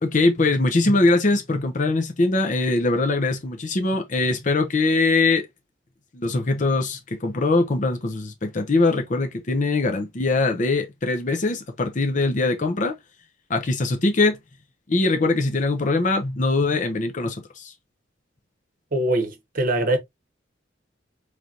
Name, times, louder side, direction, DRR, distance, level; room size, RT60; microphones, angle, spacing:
voice 1, 0.0-5.5 6.1-12.9 13.5-14.4 14.9-17.7, left 3 dB, 40° left, 0.7 m, -22 dB
voice 2, 18.9-20.0, right 1 dB, 50° right, 0.9 m, -22 dB
3.8 x 3.3 x 2.8 m
head